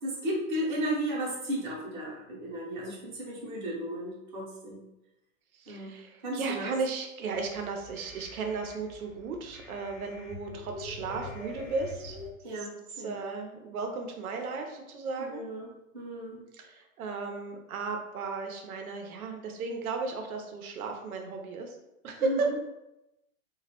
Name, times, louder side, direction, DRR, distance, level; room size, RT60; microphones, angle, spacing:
voice 1, 0.0-4.8 5.7-5.9 6.2-6.7 12.4-13.1 15.2-16.4 22.2-22.4, right 1 dB, 35° right, -5 dB, 0.7 m, -34 dB
voice 2, 5.6-12.2 12.5-15.4 16.5-21.8 22.0-22.5, right 4 dB, 85° right, 3 dB, 0.6 m, -35 dB
sound 1, 7.3-12.3, left 2 dB, 40° left, 0.8 m, -45 dB
2.2 x 2.0 x 2.8 m, 0.91 s
hypercardioid pair, 175°, 42 cm